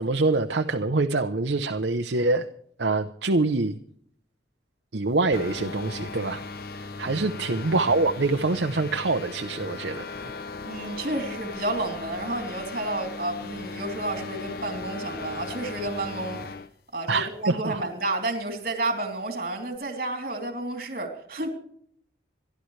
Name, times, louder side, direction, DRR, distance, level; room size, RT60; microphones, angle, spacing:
voice 1, 0.0-2.5 2.8-3.8 4.9-6.4 6.7-10.3 17.1-17.9, right 3 dB, 70° right, 0.8 m, -25 dB
sound 1, 5.3-16.7, left 3 dB, 50° left, 0.7 m, -37 dB
voice 2, 10.6-16.4 16.9-21.5, right 2 dB, 50° right, 3.2 m, -31 dB
27.0 x 11.5 x 3.3 m
head